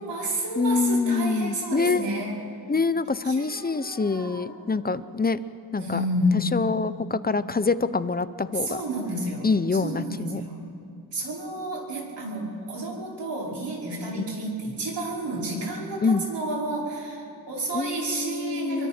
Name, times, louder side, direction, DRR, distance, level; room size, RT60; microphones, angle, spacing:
voice 1, 0.0-2.4 3.2-4.5 5.8-6.5 8.6-9.5 9.8-10.7 11.1-18.9, right 1 dB, 70° right, -3 dB, 5.4 m, -30 dB
voice 2, 0.6-2.1 2.7-5.4 5.7-6.0 6.3-8.7 9.4-10.4 14.1-14.3 16.0-16.2 17.7-18.9, left 4 dB, 20° left, 14 dB, 0.6 m, -25 dB
28.0 x 23.5 x 4.4 m, 2.5 s
wide cardioid pair, 110°, 44 cm